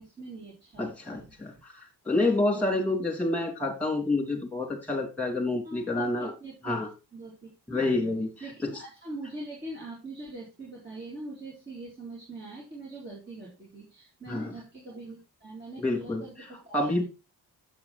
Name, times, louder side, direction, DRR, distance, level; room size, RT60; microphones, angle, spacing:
voice 1, 0.0-1.3 2.5-3.0 5.6-7.8 8.4-17.0, right 2 dB, 25° right, -5 dB, 3.6 m, -43 dB
voice 2, 0.8-6.3 6.6-6.9 7.7-8.3 14.3-14.5 15.8-16.2 16.7-17.0, left 2 dB, 5° left, 0 dB, 3.2 m, -28 dB
8.7 x 7.5 x 4.2 m, 0.29 s
wide cardioid pair, 150°, 40 cm